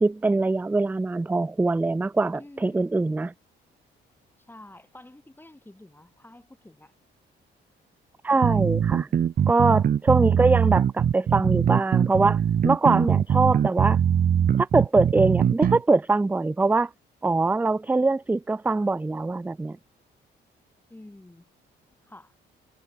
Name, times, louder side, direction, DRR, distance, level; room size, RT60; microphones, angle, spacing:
voice 1, 0.0-3.3 8.2-9.1 9.5-14.0 14.6-16.9 17.2-19.8, right 3 dB, 10° right, 0.3 m, -23 dB
voice 2, 2.3-2.9 4.5-6.9 20.9-21.5 22.0-22.4, left 1 dB, 10° left, 5.2 m, -48 dB
sound 1, 8.4-15.8, right 8 dB, 45° right, 0.9 m, -22 dB
cardioid pair, 90°, 20 cm